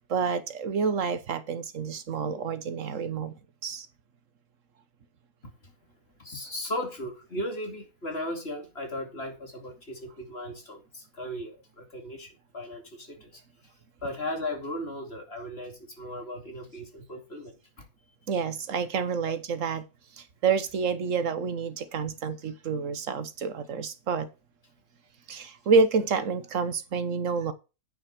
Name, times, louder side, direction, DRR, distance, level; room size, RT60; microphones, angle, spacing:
voice 1, 0.0-3.4 3.6-3.9 18.3-19.8 20.2-24.3 25.3-27.5, right 5 dB, 55° right, 1.4 m, -28 dB
voice 2, 6.2-13.4 14.0-17.5, left 1 dB, 40° left, 2.8 m, -36 dB
9.4 x 6.0 x 6.0 m
omnidirectional pair, 1.7 m